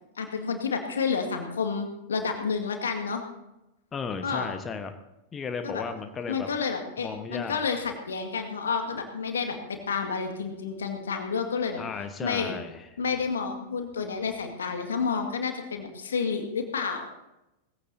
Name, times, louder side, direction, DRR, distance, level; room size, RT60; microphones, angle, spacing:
voice 1, 0.2-3.2 4.2-4.5 5.6-5.8 6.3-11.8 12.2-12.5 13.0-17.1, left 5 dB, 70° left, 5 dB, 2.0 m, -30 dB
voice 2, 3.9-4.9 5.3-6.5 7.0-7.6 11.7-12.9, left 5 dB, 20° left, 6 dB, 1.2 m, -35 dB
20.0 x 15.5 x 2.8 m, 0.94 s
figure-of-eight pair, 90°, 0 cm